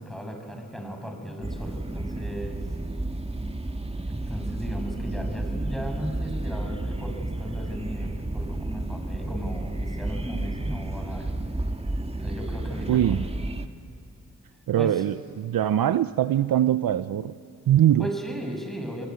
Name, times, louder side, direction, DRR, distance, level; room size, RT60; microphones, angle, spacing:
voice 1, 0.0-2.6 4.1-11.3 12.2-13.2 14.7-15.1 18.0-19.1, equal, ahead, 3 dB, 6.6 m, -36 dB
sound 1, 1.4-13.7, right 2 dB, 15° right, 1.6 m, -31 dB
voice 2, 12.9-13.2 14.7-17.3 17.7-18.1, right 11 dB, 70° right, 14 dB, 0.7 m, -22 dB
28.5 x 21.5 x 9.5 m, 2.3 s
cardioid pair, 55°, 36 cm